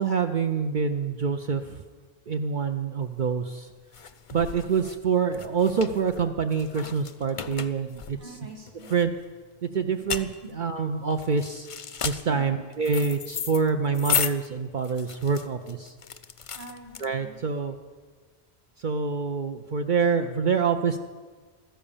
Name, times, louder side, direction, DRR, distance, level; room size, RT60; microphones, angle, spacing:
voice 1, 0.0-1.6 2.3-3.7 4.3-8.2 8.9-9.1 9.6-10.3 10.5-11.7 12.0-15.9 17.0-17.8 18.8-21.0, right 5 dB, 55° right, 6 dB, 0.7 m, -26 dB
sound 1, 3.1-17.5, left 7 dB, 40° left, 0.5 m, -35 dB
voice 2, 8.1-8.9 9.9-10.0 10.4-10.5 12.3-12.6 16.6-17.4, right 1 dB, 85° right, 1 dB, 2.2 m, -43 dB
13.5 x 10.5 x 7.1 m, 1.4 s
omnidirectional pair, 1.1 m